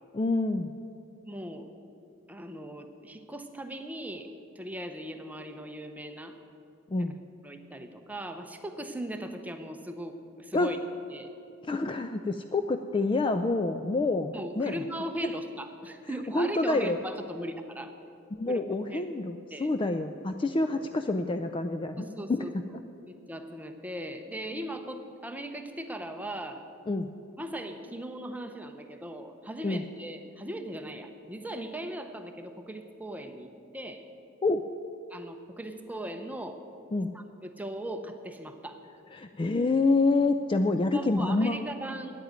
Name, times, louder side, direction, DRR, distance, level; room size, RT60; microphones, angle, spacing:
voice 1, 0.1-0.7 6.9-7.1 10.5-10.8 11.6-14.8 16.3-17.0 18.3-22.4 26.9-27.1 29.6-29.8 34.4-34.7 36.9-37.1 39.1-41.7, left 2 dB, 20° left, 8 dB, 0.3 m, -27 dB
voice 2, 1.3-1.7 2.3-4.3 4.6-6.4 7.0-7.1 7.4-10.8 11.1-11.3 14.3-17.9 18.5-18.6 18.9-19.1 19.5-19.7 20.7-20.9 22.0-22.5 23.1-26.7 27.4-34.0 35.1-36.7 37.1-38.8 40.9-42.1, right 1 dB, 5° right, 6 dB, 0.7 m, -39 dB
9.2 x 8.8 x 9.5 m, 2.7 s
head